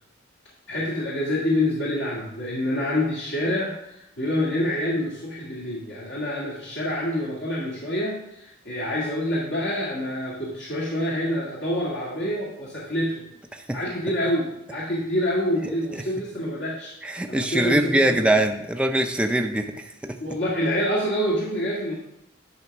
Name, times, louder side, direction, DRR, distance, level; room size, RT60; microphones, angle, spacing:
voice 1, 0.7-3.7 4.2-13.2 13.7-16.9 17.3-18.4 20.2-21.9, left 1 dB, 65° left, -6 dB, 1.9 m, -27 dB
voice 2, 17.0-20.2, right 1 dB, 5° right, 5 dB, 0.4 m, -23 dB
10.5 x 3.5 x 5.9 m, 0.83 s
head